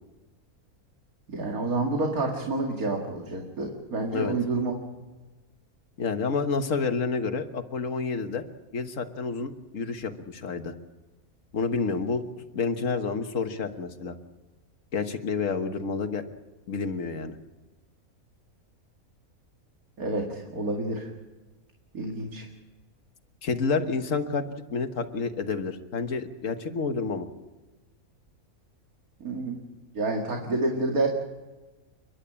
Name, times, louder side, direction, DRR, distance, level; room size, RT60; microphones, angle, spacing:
voice 1, 1.3-4.7 20.0-21.1 21.9-22.4 29.2-29.6 29.9-31.1, right 2 dB, 75° right, 1 dB, 2.6 m, -28 dB
voice 2, 6.0-8.4 8.7-10.7 11.5-12.3 12.5-14.1 14.9-16.2 16.7-17.4 23.4-24.4 24.7-27.3, left 4 dB, 60° left, 7 dB, 1.7 m, -29 dB
30.0 x 11.0 x 8.7 m, 1.2 s
omnidirectional pair, 1.5 m